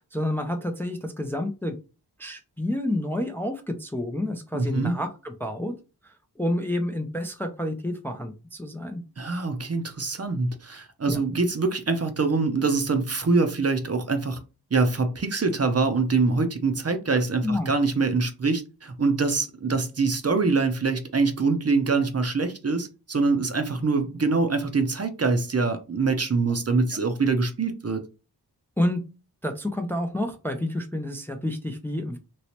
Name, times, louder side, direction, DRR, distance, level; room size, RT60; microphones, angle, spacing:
voice 1, 0.0-1.8 2.2-5.7 6.0-9.0 11.1-11.2 17.4-17.7 28.8-29.0 29.4-32.2, left 1 dB, 5° left, 0.5 m, -29 dB
voice 2, 4.5-4.9 9.2-14.4 14.7-28.0, right 4 dB, 40° right, 0.6 m, -24 dB
3.1 x 3.0 x 2.9 m
wide cardioid pair, 75°, 40 cm